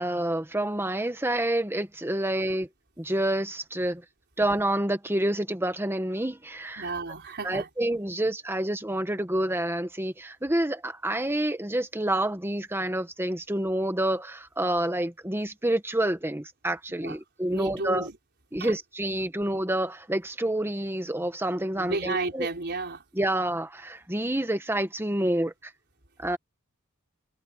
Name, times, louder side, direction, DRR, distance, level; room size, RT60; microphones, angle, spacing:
voice 1, 0.0-2.7 3.0-4.0 4.4-6.9 7.4-18.1 18.5-22.5 23.1-25.7 26.2-26.4, right 1 dB, 10° right, 1.5 m, -28 dB
voice 2, 6.8-7.7 17.0-17.2 17.5-18.2 18.6-18.7 21.7-23.0, right 3 dB, 55° right, 4.4 m, -32 dB
head